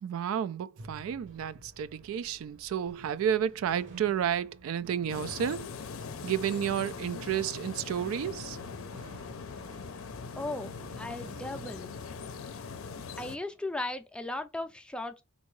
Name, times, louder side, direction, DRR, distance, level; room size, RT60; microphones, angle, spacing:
voice 1, 0.0-5.8 6.2-8.6, right 9 dB, 85° right, 0.3 m, -31 dB
sound 1, 0.8-13.1, right 2 dB, 65° right, 0.9 m, -52 dB
sound 2, 5.1-13.4, left 5 dB, 85° left, 0.5 m, -41 dB
voice 2, 10.4-12.0 13.2-15.2, left 2 dB, 5° left, 0.4 m, -37 dB
3.6 x 2.6 x 3.1 m
head